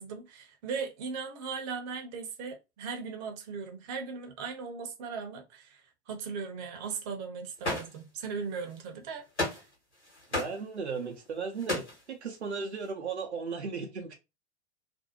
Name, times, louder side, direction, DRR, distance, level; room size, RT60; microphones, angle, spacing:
voice 1, 0.0-9.3 9.5-9.6, right 5 dB, 40° right, 0.8 m, -38 dB
sound 1, 7.6-7.9 8.7-8.8 9.4-9.7 10.0-10.6 10.9-11.0 11.3-12.0, left 1 dB, 90° left, 1.1 m, -32 dB
voice 2, 10.3-14.1, right 5 dB, 80° right, 0.7 m, -36 dB
2.5 x 2.1 x 2.8 m
figure-of-eight pair, 95°, 33 cm